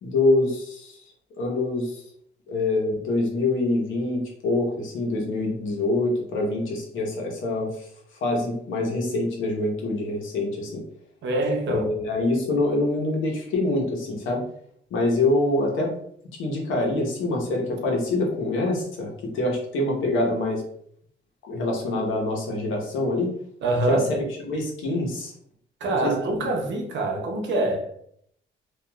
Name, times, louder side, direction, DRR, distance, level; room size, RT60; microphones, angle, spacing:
voice 1, 0.0-1.0 1.4-2.0 2.5-7.9 8.2-10.8 11.7-14.4 14.9-15.9 16.3-20.6 21.4-23.3 23.9-25.3 25.9-26.6, left 2 dB, 80° left, 0.9 m, -25 dB
voice 2, 11.2-11.9 23.6-24.1 25.8-27.9, right 2 dB, 65° right, 0.7 m, -25 dB
2.9 x 2.4 x 2.2 m
cardioid pair, 90°, 20 cm